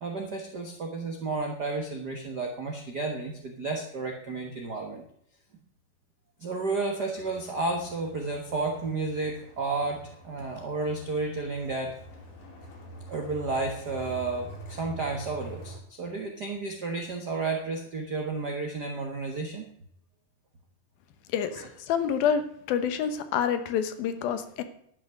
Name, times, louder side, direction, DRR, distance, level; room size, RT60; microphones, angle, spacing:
voice 1, 0.0-5.0 6.4-11.9 13.1-19.6 21.6-21.7, right 3 dB, 80° right, 2 dB, 0.9 m, -32 dB
sound 1, 7.2-15.8, right 2 dB, 60° left, 3.8 m, -46 dB
voice 2, 21.3-22.4 22.7-24.6, left 8 dB, 80° left, 10 dB, 2.8 m, -27 dB
12.0 x 6.2 x 9.4 m, 0.69 s
omnidirectional pair, 4.3 m